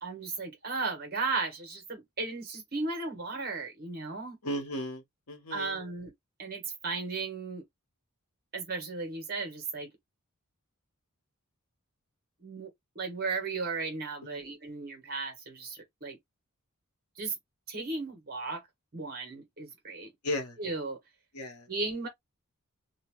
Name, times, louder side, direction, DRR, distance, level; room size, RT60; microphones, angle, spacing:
voice 1, 0.0-4.4 5.5-6.1 6.4-7.6 8.5-9.9 12.4-16.2 17.1-17.3 17.7-18.6 18.9-20.1 20.6-21.0 21.7-22.1, right 3 dB, 45° right, 1.3 m, -35 dB
voice 2, 4.4-5.8 14.2-14.4 20.2-20.6 21.3-21.7, left 1 dB, 75° left, 1.0 m, -35 dB
2.8 x 2.2 x 3.0 m
head